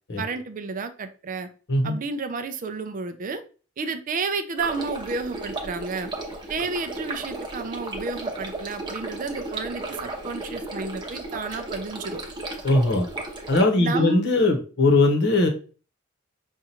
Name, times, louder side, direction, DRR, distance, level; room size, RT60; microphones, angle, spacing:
voice 1, 0.2-1.5 1.8-3.4 3.8-6.1 6.5-12.2 13.8-14.2, right 4 dB, 40° right, 9 dB, 0.4 m, -31 dB
Stream, 4.6-13.6, right 2 dB, 20° right, 0.8 m, -34 dB
voice 2, 12.6-13.1 13.5-15.5, left 2 dB, 55° left, 3 dB, 0.9 m, -20 dB
5.3 x 2.4 x 2.9 m, 0.37 s
head